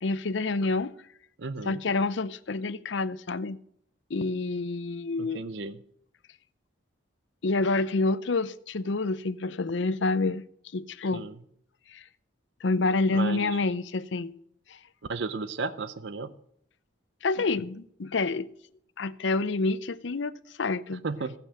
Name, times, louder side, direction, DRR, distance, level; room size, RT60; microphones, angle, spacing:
voice 1, 0.0-0.9 1.7-3.6 4.1-5.4 7.4-10.4 10.7-11.3 11.9-12.0 12.6-14.3 14.7-14.8 17.2-18.5 19.0-20.3 20.6-21.0, left 3 dB, 65° left, 0.6 m, -28 dB
voice 2, 1.4-1.8 5.2-5.8 11.1-11.3 13.1-13.6 15.1-16.3 21.0-21.3, right 4 dB, 60° right, 0.6 m, -34 dB
14.5 x 8.9 x 6.3 m
head